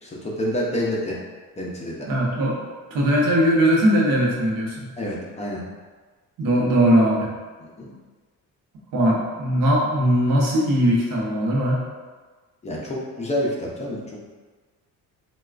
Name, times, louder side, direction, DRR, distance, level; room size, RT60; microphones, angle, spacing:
voice 1, 0.0-1.2 1.6-2.1 5.0-5.6 7.8-7.9 12.6-14.0, equal, 20° left, -4 dB, 0.4 m, -27 dB
voice 2, 2.1-2.7 2.9-4.9 6.4-7.3 8.9-11.8, equal, 80° right, -3 dB, 0.8 m, -20 dB
3.9 x 2.2 x 2.4 m, 1.4 s
cardioid pair, 150°, 33 cm